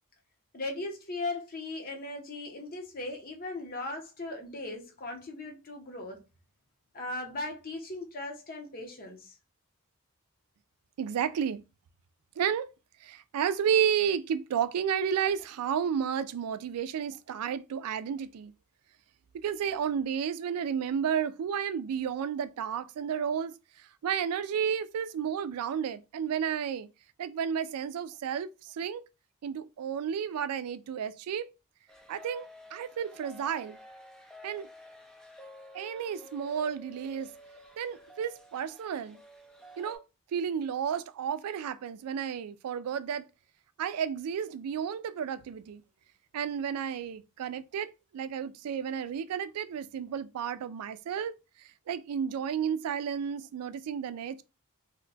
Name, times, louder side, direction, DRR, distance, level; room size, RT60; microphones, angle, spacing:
voice 1, 0.5-6.2 6.9-9.4, left 2 dB, 40° left, 0.8 m, -38 dB
voice 2, 11.0-11.6 12.4-12.7 13.0-18.5 19.3-26.9 27.2-29.0 29.4-31.5 32.1-33.8 34.4-34.7 35.7-37.3 37.8-39.2 39.8-40.0 40.3-43.2 43.8-45.8 46.3-51.3 51.9-54.4, right 8 dB, 85° right, 0.3 m, -32 dB
sound 1, 31.9-40.0, left 1 dB, 5° left, 0.3 m, -51 dB
2.8 x 2.2 x 3.9 m
head